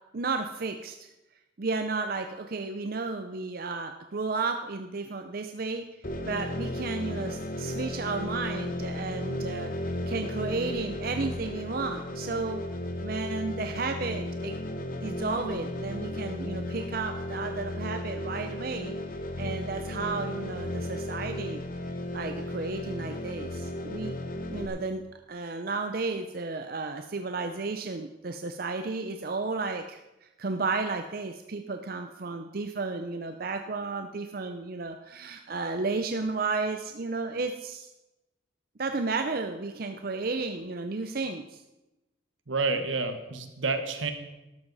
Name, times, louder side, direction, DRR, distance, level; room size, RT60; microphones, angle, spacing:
voice 1, 0.1-1.1 1.6-5.9 6.3-9.7 10.1-12.6 13.0-14.5 15.0-18.9 19.4-21.6 22.1-24.2 24.5-25.0 25.3-37.9 38.8-41.6, right 3 dB, 50° right, 6 dB, 0.6 m, -33 dB
sound 1, 6.0-24.7, left 1 dB, 45° left, 1.2 m, -35 dB
voice 2, 42.5-44.1, right 3 dB, 80° right, 7 dB, 1.4 m, -29 dB
13.0 x 12.0 x 4.1 m, 1.0 s
head